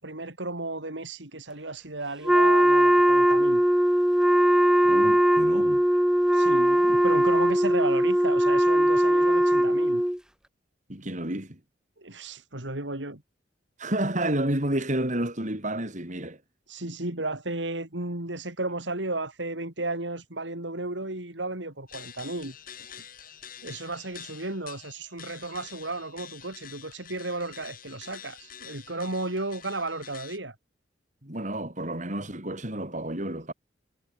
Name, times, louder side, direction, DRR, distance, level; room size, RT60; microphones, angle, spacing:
voice 1, 0.0-3.6 6.3-10.0 12.0-13.2 16.7-23.1 23.6-30.5, right 2 dB, 90° right, 4.8 m, -34 dB
Wind instrument woodwind instrument, 2.3-10.2, equal, 5° right, 1.1 m, -20 dB
voice 2, 4.8-5.8 10.9-11.6 13.8-16.4 31.2-33.5, right 1 dB, 45° right, 5.3 m, -30 dB
sound 1, 21.9-30.4, left 9 dB, 50° left, 4.6 m, -47 dB
head